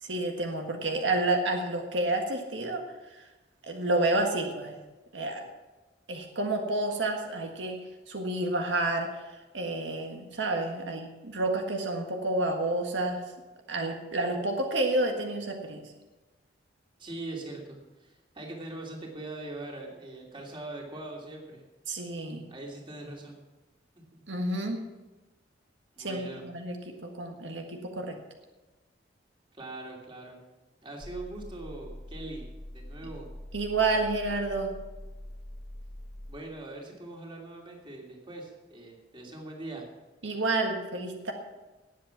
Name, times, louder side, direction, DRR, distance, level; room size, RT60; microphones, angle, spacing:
voice 1, 0.0-2.8 3.1-3.2 3.7-4.8 5.1-5.4 6.1-7.8 8.1-9.1 9.5-13.2 13.7-15.9 21.9-22.5 24.3-24.8 26.0-28.2 33.5-34.7 40.2-41.3, right 2 dB, 85° right, 3 dB, 1.7 m, -29 dB
voice 2, 17.0-21.6 22.5-23.4 24.1-24.2 24.5-24.6 25.9-26.5 29.5-30.4 30.8-32.5 32.7-33.3 36.3-39.8, right 2 dB, 25° right, -1 dB, 3.0 m, -41 dB
sound 1, 31.0-36.4, left 1 dB, 20° left, 0.8 m, -44 dB
19.0 x 7.8 x 5.9 m, 1.1 s
head